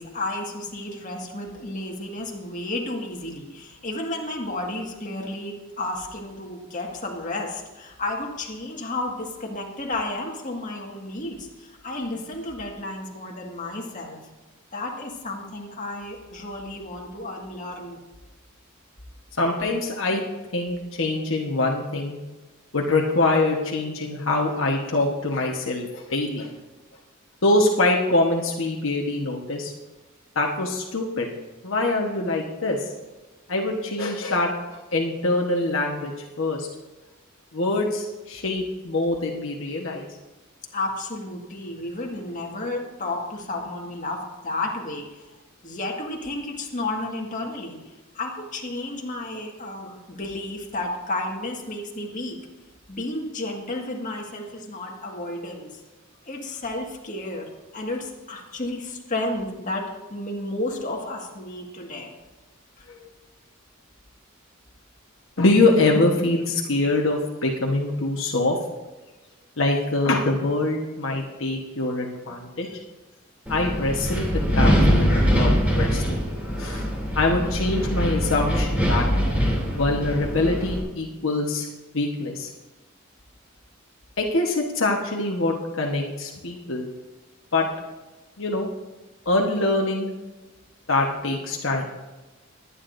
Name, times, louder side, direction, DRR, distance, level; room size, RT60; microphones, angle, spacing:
voice 1, 0.0-14.2 14.7-18.0 40.7-45.2 45.6-47.8 48.1-52.4 52.9-55.8 56.3-62.1 62.8-62.9, left 2 dB, 40° left, 0 dB, 1.8 m, -32 dB
voice 2, 19.4-20.2 20.5-22.2 22.7-26.5 27.4-29.7 30.3-31.3 31.6-32.9 33.5-36.7 37.5-40.1 63.0-63.1 65.4-68.5 69.6-72.8 73.5-76.2 76.6-76.8 77.1-79.1 79.7-81.7 81.9-82.5 84.2-86.9 87.5-87.7 88.4-88.7 89.2-90.1 90.9-91.8, left 2 dB, 65° left, 0 dB, 1.2 m, -24 dB
Wind, 73.5-80.8, equal, 5° right, 2.9 m, -23 dB
21.5 x 9.8 x 2.6 m, 1.2 s
head